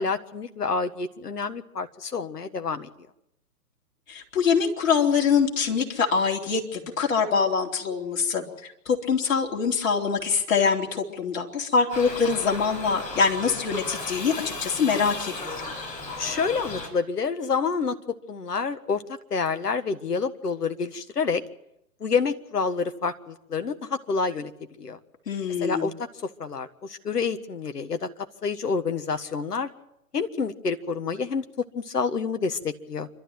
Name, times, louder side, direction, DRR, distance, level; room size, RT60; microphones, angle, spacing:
voice 1, 0.0-2.9 16.2-19.0 19.3-21.4 22.0-24.5 24.8-25.0 25.6-28.1 28.4-29.7 30.1-33.1, left 5 dB, 70° left, 8 dB, 1.6 m, -28 dB
voice 2, 4.1-15.7 25.3-25.9, left 5 dB, 55° left, 0 dB, 4.1 m, -24 dB
Shout / Livestock farm animals working animals, 11.9-16.9, left 3 dB, 15° left, 5.7 m, -35 dB
27.0 x 13.0 x 9.2 m, 0.81 s
figure-of-eight pair, 130°, 48 cm